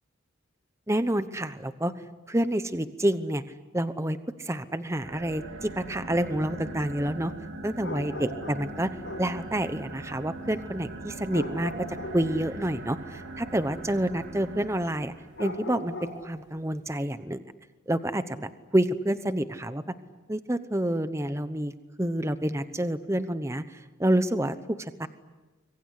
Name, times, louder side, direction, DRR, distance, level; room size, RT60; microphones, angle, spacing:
voice 1, 0.9-1.9 2.3-3.4 3.7-7.3 7.6-11.9 12.1-15.1 15.4-17.4 17.9-19.9 20.3-21.7 22.0-25.1, right 1 dB, 15° right, 11 dB, 0.9 m, -28 dB
sound 1, 5.0-15.4, right 2 dB, 65° right, 3.6 m, -41 dB
sound 2, 7.8-9.4 11.3-12.3 15.3-16.3, left 1 dB, 60° left, 6.8 m, -38 dB
26.0 x 22.5 x 9.9 m, 1.2 s
head